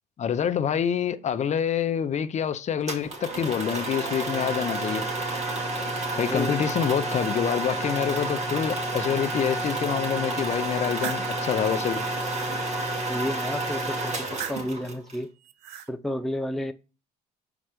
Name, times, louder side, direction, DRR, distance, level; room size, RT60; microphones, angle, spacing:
voice 1, 0.2-5.0 6.2-12.0, left 8 dB, 45° left, 0.6 m, -27 dB
sound 1, 2.9-15.2, right 2 dB, 40° right, 2.0 m, -30 dB
voice 2, 6.1-6.6 13.1-15.3 15.9-16.7, left 1 dB, ahead, 0.5 m, -31 dB
sound 2, 10.6-11.3 11.9-12.5 14.1-14.8 15.4-15.9, right 10 dB, 85° right, 0.7 m, -39 dB
6.0 x 4.3 x 5.1 m
cardioid pair, 110°, 17 cm